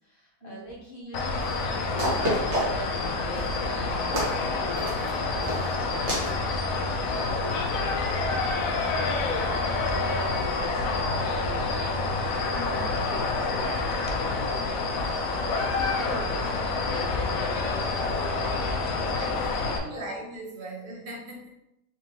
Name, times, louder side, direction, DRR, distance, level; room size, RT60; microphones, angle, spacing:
voice 1, 0.0-15.1 15.5-20.1, right 1 dB, 35° left, -5 dB, 1.3 m, -43 dB
sound 1, 1.1-19.8, left 3 dB, 70° left, 0.9 m, -28 dB
sound 2, 1.4-1.5 2.0-2.9 3.3-3.6 4.1-4.4 4.8-5.1 5.4-5.7 6.1-6.3, equal, 65° right, 1.7 m, -28 dB
voice 2, 12.5-13.1 19.1-21.5, right 1 dB, 45° right, -3 dB, 1.2 m, -40 dB
4.0 x 3.4 x 2.9 m, 0.84 s
omnidirectional pair, 1.8 m